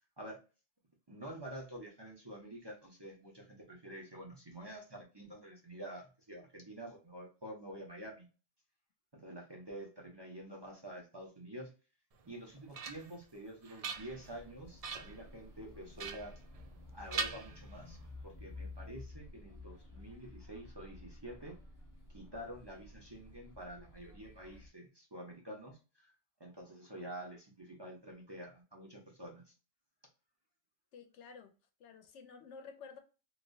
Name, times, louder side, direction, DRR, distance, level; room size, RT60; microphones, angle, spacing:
voice 1, 1.1-8.3 9.1-11.7 12.3-16.3 16.9-18.0 18.2-21.6 22.1-26.1 26.4-29.4, right 1 dB, 25° right, 0.9 m, -48 dB
sound 1, 12.2-13.2 13.6-14.4 14.8-15.2 16.0-16.8 17.1-18.1, right 5 dB, 55° right, 0.4 m, -42 dB
sound 2, 13.9-24.7, left 2 dB, 20° left, 0.8 m, -52 dB
voice 2, 30.9-31.5 31.8-33.0, left 5 dB, 85° left, 1.0 m, -52 dB
3.2 x 2.9 x 2.6 m
omnidirectional pair, 1.2 m